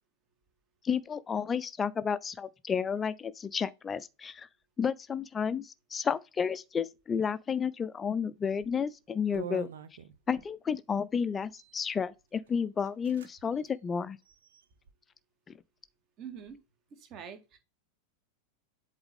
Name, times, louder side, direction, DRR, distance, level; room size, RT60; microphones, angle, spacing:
voice 1, 0.8-4.5 4.8-9.7 10.3-14.2, left 6 dB, 20° left, 0.5 m, -31 dB
sound 1, 8.5-8.8 9.3-10.5 11.4-11.9 12.5-12.6 12.8-13.3 13.6-13.7 14.2-14.9, right 9 dB, 60° right, 0.7 m, -45 dB
voice 2, 16.2-16.6 17.0-17.6, right 7 dB, 35° right, 1.8 m, -45 dB
7.9 x 4.0 x 3.5 m
figure-of-eight pair, 90°, 0 cm